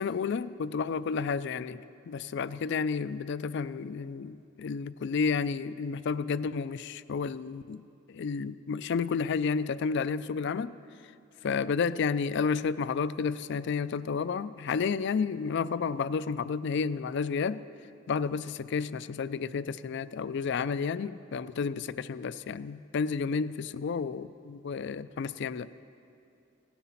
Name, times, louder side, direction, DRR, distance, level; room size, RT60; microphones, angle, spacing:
voice 1, 0.0-7.8 8.1-10.7 11.4-17.6 18.1-25.7, left 5 dB, 60° left, 16 dB, 0.4 m, -31 dB
16.0 x 11.5 x 5.8 m, 2.7 s
head